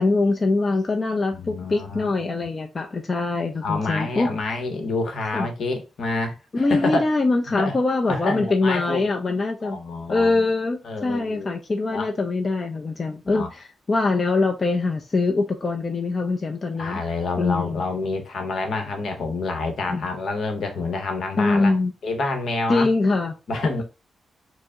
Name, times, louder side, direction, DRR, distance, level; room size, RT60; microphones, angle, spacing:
voice 1, 0.0-4.3 5.3-5.5 6.5-9.8 10.1-17.0 17.4-17.8 19.9-20.0 21.4-21.9 22.7-23.3, left 3 dB, 30° left, 0.4 m, -23 dB
voice 2, 1.3-2.1 3.6-7.0 7.6-7.8 8.1-10.5 10.8-11.5 11.9-12.1 13.3-13.5 16.7-21.7 22.0-22.9 23.5-23.8, left 3 dB, 65° left, 0.9 m, -28 dB
4.6 x 2.0 x 3.6 m
wide cardioid pair, 125°, 0 cm